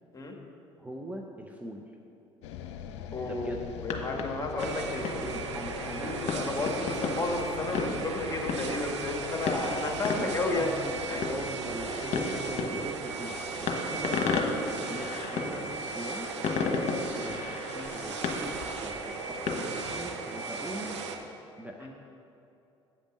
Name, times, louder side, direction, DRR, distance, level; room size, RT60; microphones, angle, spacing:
voice 1, 0.8-1.9 3.2-3.6 5.0-6.2 10.1-14.5 14.8-16.3 16.6-17.4 17.9-21.0 21.6-21.9, right 1 dB, 10° right, 1 dB, 0.7 m, -41 dB
sound 1, 2.4-16.7, left 8 dB, 75° left, 0.5 m, -45 dB
voice 2, 3.1-5.3 5.7-10.8 11.1-11.2 16.7-16.9 17.7-17.9 21.8-21.9, left 2 dB, 25° left, 1 dB, 1.6 m, -33 dB
sound 2, 3.7-20.1, left 4 dB, 55° left, 1.1 m, -35 dB
sound 3, 4.6-21.2, right 4 dB, 85° right, 0.6 m, -37 dB
8.6 x 5.2 x 6.4 m, 2.8 s
hypercardioid pair, 60°, 14 cm